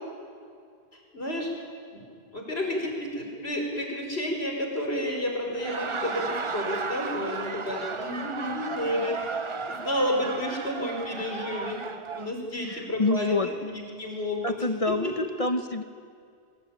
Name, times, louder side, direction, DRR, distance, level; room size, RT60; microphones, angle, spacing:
voice 1, 0.9-1.5 1.9-2.1 2.3-9.2 9.7-11.8 12.1-14.5 14.9-15.1, left 1 dB, 75° left, 1 dB, 5.1 m, -31 dB
Laughter, 5.5-12.3, right 4 dB, 30° right, 0.8 m, -34 dB
voice 2, 12.6-13.8 14.4-15.8, left 2 dB, 35° left, 8 dB, 1.0 m, -28 dB
23.5 x 21.0 x 9.3 m, 2.2 s
omnidirectional pair, 1.1 m